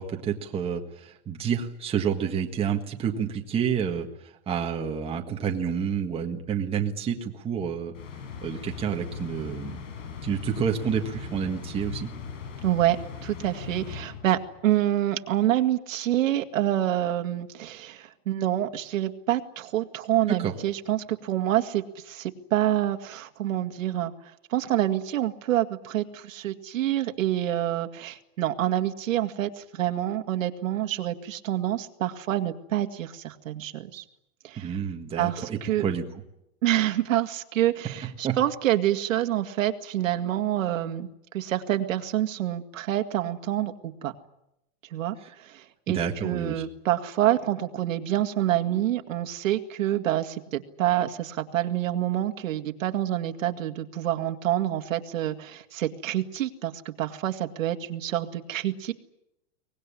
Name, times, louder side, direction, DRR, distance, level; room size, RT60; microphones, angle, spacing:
voice 1, 0.0-4.1 4.5-7.9 8.4-9.8 10.2-12.1 20.3-20.5 34.6-36.0 38.2-38.4 45.9-46.6, right 7 dB, 15° right, 2 dB, 1.6 m, -29 dB
sound 1, 7.9-14.6, left 7 dB, 75° left, 4.8 m, -39 dB
voice 2, 12.6-13.0 13.2-34.0 34.4-34.8 35.2-35.8 36.6-41.1 41.3-44.1 44.9-58.9, right 12 dB, 85° right, 6 dB, 2.2 m, -27 dB
24.0 x 19.0 x 10.0 m, 0.86 s
supercardioid pair, 165°, 38 cm